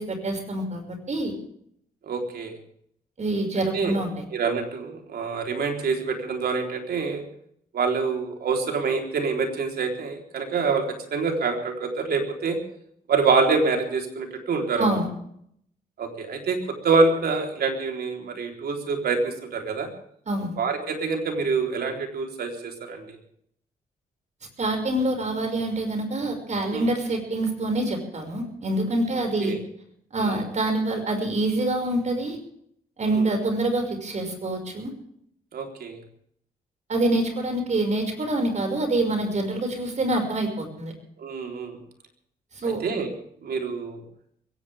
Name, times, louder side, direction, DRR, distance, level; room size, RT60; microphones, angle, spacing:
voice 1, 0.0-1.3 3.2-4.2 14.8-15.1 20.3-20.6 24.6-29.5 30.1-32.4 33.0-34.9 36.9-40.9 42.5-42.8, right 2 dB, 45° right, 4 dB, 6.0 m, -26 dB
voice 2, 2.0-2.5 3.7-4.0 4.3-7.2 7.7-10.8 11.1-12.6 13.1-14.9 16.0-19.9 20.6-23.2 26.7-26.9 29.1-29.6 30.2-30.4 33.0-33.2 35.5-36.0 41.2-41.8 42.6-43.1 43.4-44.0, right 4 dB, 75° right, 3 dB, 4.0 m, -26 dB
22.0 x 17.5 x 3.6 m, 0.68 s
cardioid pair, 80°, 16 cm